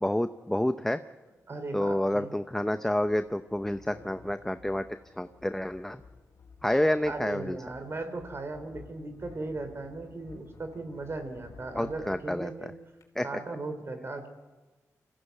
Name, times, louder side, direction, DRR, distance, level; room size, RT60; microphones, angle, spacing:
voice 1, 0.0-1.0 1.7-4.8 5.2-6.0 6.6-7.6 11.7-12.5 13.2-13.3, left 1 dB, 5° left, 10 dB, 0.7 m, -28 dB
sound 1, 1.4-1.5 2.4-13.0, left 4 dB, 70° left, 3.3 m, -53 dB
voice 2, 1.5-2.3 7.0-12.7 13.2-14.3, right 3 dB, 45° right, 9 dB, 3.2 m, -37 dB
25.5 x 15.0 x 8.2 m, 1.2 s
cardioid pair, 75°, 6 cm